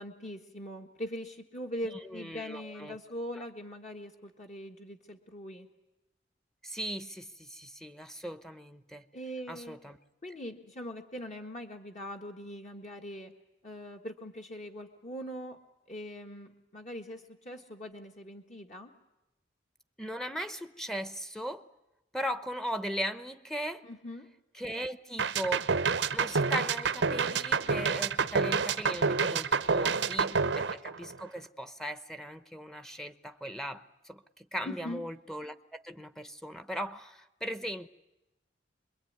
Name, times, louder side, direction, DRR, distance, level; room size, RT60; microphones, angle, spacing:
voice 1, 0.0-5.7 9.1-9.8 10.2-13.3 13.6-15.6 15.9-18.9 23.8-24.3 29.8-30.5 34.6-35.0, equal, 40° left, 2 dB, 1.6 m, -42 dB
voice 2, 2.1-3.0 6.6-9.0 9.5-10.0 20.0-21.6 22.1-23.9 24.6-25.7 26.1-37.9, equal, 5° left, 10 dB, 0.9 m, -38 dB
sound 1, 25.2-31.4, right 5 dB, 80° right, 0.9 m, -28 dB
27.0 x 22.0 x 9.5 m, 0.97 s
head